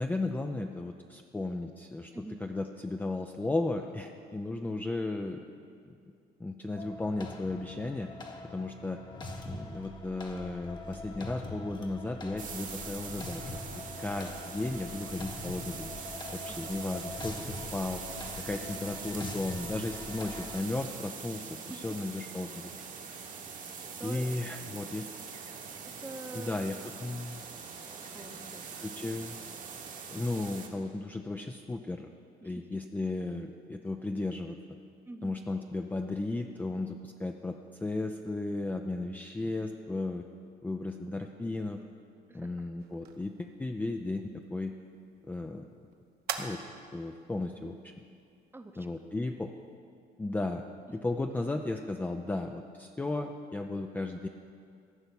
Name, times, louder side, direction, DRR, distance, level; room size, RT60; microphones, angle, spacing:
voice 1, 0.0-5.4 6.4-8.1 8.5-9.0 9.5-13.6 14.0-15.9 16.3-18.0 18.3-22.7 24.0-25.1 26.3-27.4 28.8-29.4 30.1-32.1 32.4-34.6 35.2-40.2 40.6-41.8 42.3-44.2 44.5-44.7 45.2-45.7 46.4-46.6 46.9-47.9 48.8-49.5 50.2-50.6 50.9-54.3, left 2 dB, 10° left, 4 dB, 0.5 m, -35 dB
voice 2, 2.1-2.4 16.5-16.7 21.5-21.8 23.7-24.4 26.0-26.6 28.1-28.8 32.4-32.8 35.1-35.4 42.3-42.7 48.5-48.9, right 2 dB, 15° right, 7 dB, 0.8 m, -46 dB
sound 1, 6.8-20.6, left 2 dB, 25° left, 1.1 m, -43 dB
sound 2, 12.4-30.7, right 6 dB, 50° right, 1.4 m, -43 dB
sound 3, 42.8-49.7, right 7 dB, 70° right, 1.0 m, -46 dB
14.5 x 5.6 x 8.2 m, 2.3 s
cardioid pair, 110°, 17 cm